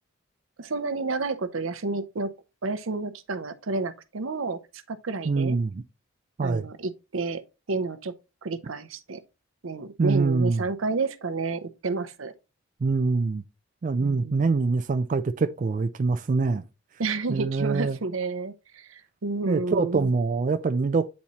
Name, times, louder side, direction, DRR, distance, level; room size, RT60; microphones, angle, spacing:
voice 1, 0.6-2.3 2.6-5.6 6.4-7.4 7.7-8.1 8.4-9.2 9.6-12.3 14.0-14.5 17.0-20.1, right 3 dB, 80° right, 0.7 m, -30 dB
voice 2, 5.3-5.8 6.4-6.6 10.0-10.6 12.8-13.4 13.8-16.6 17.3-18.0 19.5-21.1, right 4 dB, 40° right, 0.3 m, -24 dB
8.6 x 4.2 x 3.0 m
head